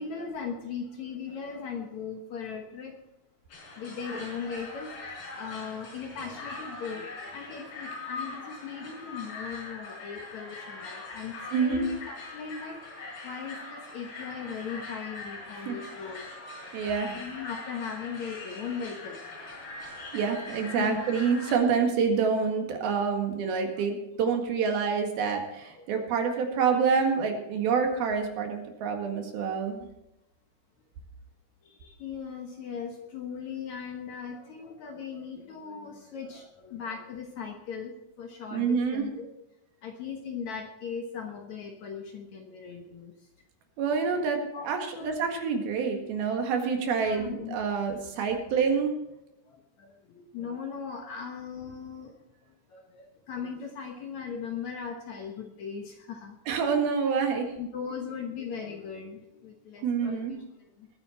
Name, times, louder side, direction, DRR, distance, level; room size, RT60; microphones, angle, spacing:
voice 1, 0.0-2.9 3.8-4.9 5.3-12.8 13.2-16.3 17.1-19.6 20.8-21.0 23.7-23.9 25.8-26.0 31.7-37.9 38.2-39.3 39.8-43.1 44.5-44.7 44.9-45.4 47.0-47.6 49.5-52.1 52.7-56.4 57.6-60.4 60.8-60.9, left 6 dB, 60° left, 3 dB, 2.1 m, -38 dB
sound 1, 3.5-21.6, left 3 dB, 85° left, 7.0 m, -42 dB
voice 2, 11.5-11.9 15.7-15.8 16.7-17.2 20.1-29.9 38.5-39.0 43.8-48.9 56.5-57.5 59.8-60.3, right 5 dB, 70° right, 3 dB, 3.7 m, -27 dB
21.0 x 9.8 x 4.4 m, 0.90 s
omnidirectional pair, 4.6 m